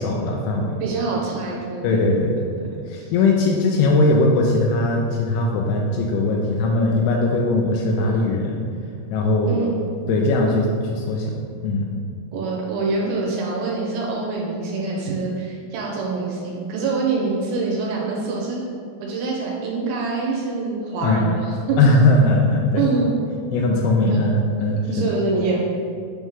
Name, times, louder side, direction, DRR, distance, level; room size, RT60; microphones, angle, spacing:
voice 1, 0.0-0.8 1.8-2.5 2.9-8.6 9.1-9.6 10.1-12.0 21.0-21.4 21.8-22.9 23.5-25.1, left 2 dB, 85° left, -1 dB, 2.3 m, -20 dB
voice 2, 0.8-2.0 2.7-3.1 9.5-9.8 12.3-18.6 19.0-21.8 22.8-23.2 24.9-25.6, right 3 dB, 80° right, -3 dB, 2.7 m, -25 dB
8.7 x 3.1 x 3.6 m, 2.3 s
omnidirectional pair, 5.0 m